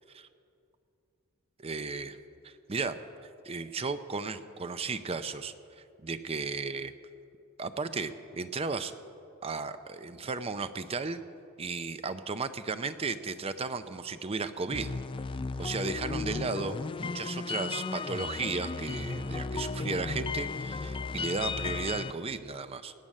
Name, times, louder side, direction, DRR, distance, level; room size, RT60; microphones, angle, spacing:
voice 1, 1.6-2.2 2.4-3.0 3.4-5.5 6.0-6.9 7.6-8.9 9.4-11.2 11.6-14.9 15.6-22.9, right 4 dB, 30° right, 11 dB, 0.5 m, -35 dB
sound 1, 14.7-22.1, left 4 dB, 25° left, 0.4 m, -35 dB
18.0 x 8.7 x 6.5 m, 2.5 s
head